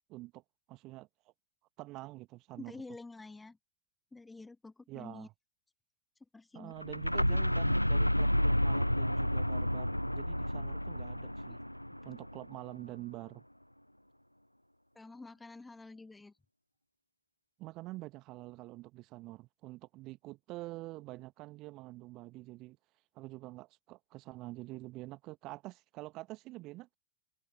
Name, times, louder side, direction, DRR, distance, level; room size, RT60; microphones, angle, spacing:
voice 1, 0.1-0.4 0.7-1.3 1.8-2.8 4.9-5.3 6.5-11.6 12.0-13.4 17.6-22.8 23.1-26.9, right 19 dB, 40° right, 1.4 m, -47 dB
voice 2, 2.6-3.6 4.1-5.3 6.3-6.7 11.5-11.6 14.9-16.3, left 3 dB, 10° left, 1.7 m, -49 dB
sound 1, 6.8-12.6, equal, 90° left, 0.3 m, -30 dB
figure-of-eight pair, 90°, 0 cm